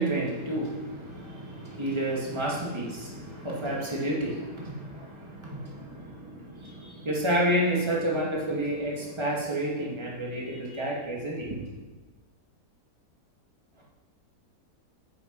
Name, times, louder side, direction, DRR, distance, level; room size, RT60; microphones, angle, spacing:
voice 1, 0.0-11.6, right 1 dB, 15° right, -4 dB, 2.1 m, -30 dB
9.3 x 7.1 x 5.4 m, 1.2 s
omnidirectional pair, 1.8 m